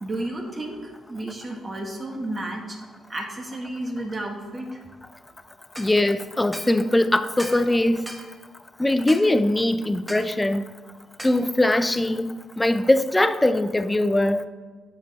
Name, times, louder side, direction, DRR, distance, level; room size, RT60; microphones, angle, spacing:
voice 1, 0.0-2.8 3.1-4.8, right 1 dB, 30° right, 1.4 m, -32 dB
sound 1, 5.7-5.9 6.5-6.7 7.4-7.7 8.1-8.3 9.1-9.3 10.1-10.3 11.2-11.4, right 1 dB, 10° right, 1.1 m, -37 dB
voice 2, 5.8-8.1 8.8-10.6 11.2-14.5, left 1 dB, 10° left, 0.4 m, -21 dB
9.2 x 6.6 x 4.0 m
cardioid pair, 90°, 0 cm